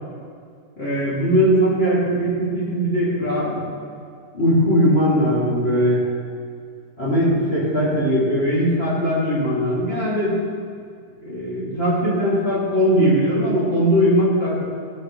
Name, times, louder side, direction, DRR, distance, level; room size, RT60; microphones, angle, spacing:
voice 1, 0.8-3.6 4.3-6.0 7.0-10.3 11.2-14.6, equal, 40° left, -9 dB, 3.3 m, -19 dB
16.5 x 10.0 x 3.4 m, 2.2 s
omnidirectional pair, 1.7 m